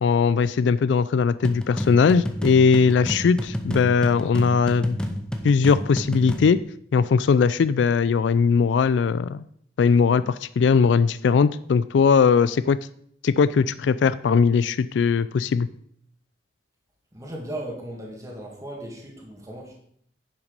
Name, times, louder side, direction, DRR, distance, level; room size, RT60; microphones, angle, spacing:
voice 1, 0.0-5.0 5.4-6.6 6.9-9.5 9.8-12.8 13.2-15.7, left 5 dB, 80° left, 15 dB, 0.3 m, -19 dB
sound 1, 1.4-6.6, equal, 5° left, 0.8 m, -30 dB
voice 2, 17.1-19.7, right 1 dB, 20° right, -2 dB, 1.9 m, -36 dB
10.5 x 5.9 x 5.3 m, 0.66 s
head